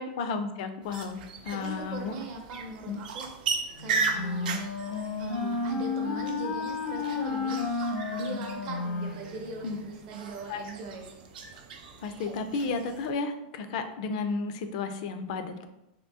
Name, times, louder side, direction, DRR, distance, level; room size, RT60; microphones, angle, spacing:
voice 1, 0.0-2.2 2.9-3.0 9.6-9.8 10.5-10.6 12.0-15.7, left 4 dB, 50° left, 8 dB, 0.3 m, -33 dB
sound 1, 0.8-13.1, right 4 dB, 85° right, 0.5 m, -37 dB
voice 2, 1.5-4.6 4.9-11.1, right 4 dB, 40° right, 2 dB, 0.5 m, -40 dB
Wind instrument woodwind instrument, 3.8-9.9, left 4 dB, 90° left, 1.0 m, -32 dB
3.5 x 2.7 x 2.6 m, 0.87 s
supercardioid pair, 175°, 5 cm